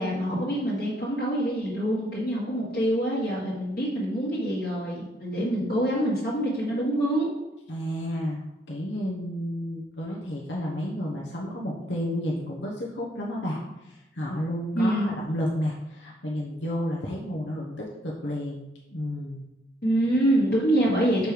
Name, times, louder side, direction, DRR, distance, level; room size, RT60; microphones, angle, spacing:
voice 1, 0.0-7.3 14.7-15.1 19.8-21.3, right 1 dB, 50° left, -7 dB, 1.6 m, -25 dB
voice 2, 7.7-8.4 8.7-18.6 18.9-19.4, equal, 80° left, -2 dB, 1.1 m, -31 dB
6.7 x 4.7 x 5.1 m, 0.97 s
head